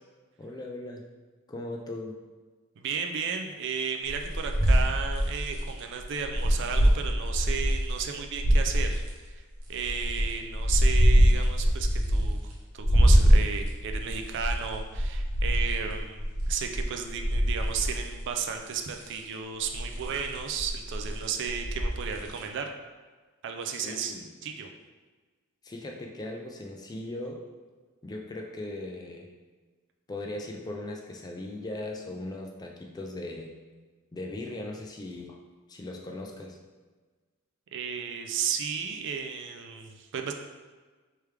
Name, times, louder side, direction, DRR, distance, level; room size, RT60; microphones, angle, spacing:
voice 1, 0.4-1.0 1.5-2.2 23.8-24.3 25.6-27.4 28.0-29.3 30.1-33.5 34.1-35.4 35.7-36.6, left 2 dB, 20° left, 0 dB, 0.3 m, -38 dB
voice 2, 2.8-9.4 9.7-16.2 16.5-22.7 23.4-24.1 24.4-24.7 37.7-40.3, right 6 dB, 55° right, 4 dB, 0.3 m, -34 dB
sound 1, 4.1-8.0 8.3-9.1 9.7-12.5 12.8-18.3 18.7-19.2 19.6-22.4, equal, 70° right, 0.9 m, -24 dB
3.4 x 3.2 x 3.3 m, 1.4 s
head